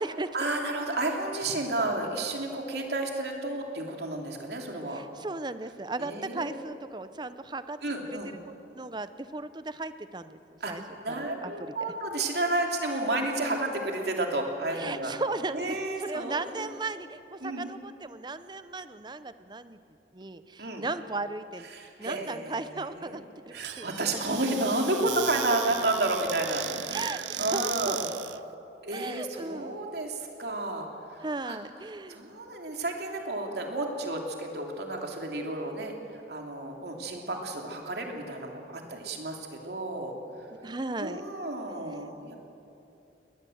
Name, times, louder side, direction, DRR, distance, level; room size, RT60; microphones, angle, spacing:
voice 1, 0.3-5.0 6.0-6.7 7.8-8.3 10.6-10.7 11.0-15.1 15.5-16.7 17.4-17.7 20.6-20.8 21.7-23.2 23.5-28.1 28.8-30.8 31.1-31.2 31.4-31.6 32.1-35.9 36.3-40.2 41.0-42.4, right 2 dB, 65° right, 1 dB, 2.9 m, -31 dB
voice 2, 4.9-7.8 8.7-10.8 11.1-11.5 11.8-11.9 14.7-19.8 20.1-21.7 22.0-23.9 26.9-28.0 28.9-29.8 31.2-32.2 40.6-41.2, right 3 dB, 25° right, 12 dB, 0.6 m, -36 dB
Squeak / Cupboard open or close, 23.5-28.4, right 13 dB, 85° right, 0.5 m, -36 dB
21.5 x 19.0 x 7.9 m, 2.8 s
head